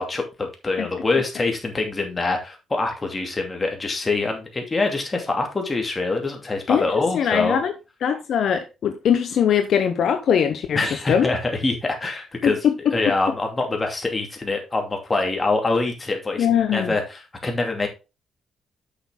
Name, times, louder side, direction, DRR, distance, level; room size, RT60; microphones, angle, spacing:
voice 1, 0.0-7.6 10.7-17.9, left 3 dB, 25° left, 2.6 m, -25 dB
voice 2, 7.1-7.7 8.0-10.8 11.1-11.3 12.6-12.9 16.4-16.9, left 8 dB, 65° left, 0.9 m, -21 dB
7.8 x 6.4 x 3.8 m
cardioid pair, 90°, 0 cm